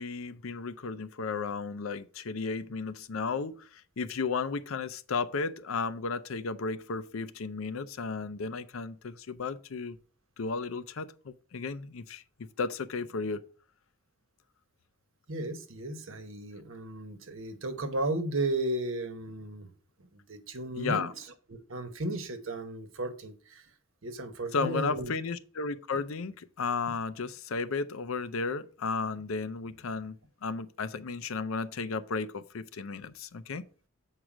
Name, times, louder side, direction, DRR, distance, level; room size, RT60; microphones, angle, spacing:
voice 1, 0.0-10.0 10.4-13.4 20.8-21.1 24.5-30.2 30.4-33.6, left 4 dB, 75° left, 0.6 m, -34 dB
voice 2, 15.3-19.7 20.1-21.1 21.5-23.6 24.0-25.1, right 2 dB, 65° right, 1.1 m, -34 dB
7.5 x 4.7 x 5.0 m
head